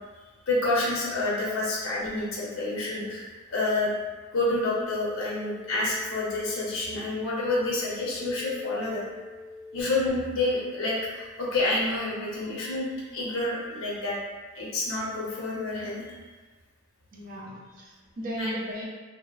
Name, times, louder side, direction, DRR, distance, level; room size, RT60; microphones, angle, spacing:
voice 1, 0.5-3.9 4.3-9.0 9.7-14.2 14.5-16.2 18.4-18.5, left 2 dB, 90° left, -6 dB, 0.7 m, -28 dB
sound 1, 4.8-9.8, left 3 dB, 25° left, 0.5 m, -45 dB
voice 2, 17.1-18.8, equal, 40° right, -4 dB, 0.5 m, -36 dB
2.9 x 2.1 x 2.3 m, 1.4 s
head